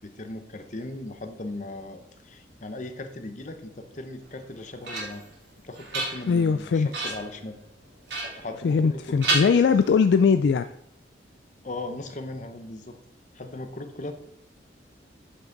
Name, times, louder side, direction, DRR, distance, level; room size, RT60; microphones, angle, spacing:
voice 1, 0.0-5.2 5.6-7.6 8.4-9.6 11.6-13.0 13.3-14.1, left 2 dB, 45° left, 7 dB, 0.9 m, -38 dB
sound 1, 4.3-5.3 5.7-6.5 6.9-7.3 8.1-8.9 9.2-10.2, right 3 dB, 75° right, 2.3 m, -31 dB
voice 2, 6.3-7.2 8.6-10.7, left 5 dB, 65° left, 10 dB, 0.3 m, -21 dB
8.1 x 5.9 x 3.9 m, 0.72 s
head